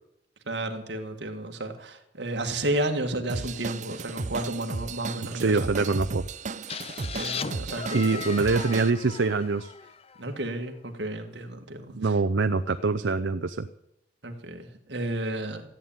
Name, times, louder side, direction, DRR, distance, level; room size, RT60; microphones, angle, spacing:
voice 1, 0.5-5.7 6.6-6.8 7.1-8.2 10.2-12.1 14.2-15.8, right 1 dB, 65° right, 5 dB, 2.0 m, -32 dB
Drum kit / Drum, 3.3-8.9, right 4 dB, 40° right, 0.5 m, -35 dB
voice 2, 5.3-6.2 7.9-9.7 11.9-13.7, right 4 dB, 80° right, 11 dB, 0.6 m, -24 dB
sound 1, 6.7-10.4, left 6 dB, 35° left, 0.5 m, -37 dB
14.5 x 9.1 x 8.9 m, 0.83 s
head